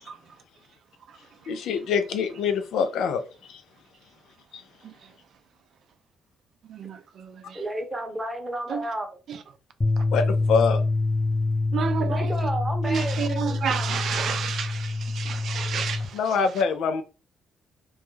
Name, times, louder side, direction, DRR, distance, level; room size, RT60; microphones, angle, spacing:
voice 1, 1.5-3.2 10.1-10.8 16.1-17.0, left 5 dB, 80° left, 0.4 m, -24 dB
voice 2, 6.7-7.6 8.7-8.8 9.3-9.4 11.7-12.3 12.8-16.4, right 7 dB, 65° right, 0.3 m, -30 dB
voice 3, 7.5-9.1 12.0-13.6, right 1 dB, 15° right, 0.8 m, -32 dB
sound 1, 9.8-16.1, left 3 dB, 20° left, 0.5 m, -26 dB
2.3 x 2.1 x 3.0 m
cardioid pair, 90°, 0 cm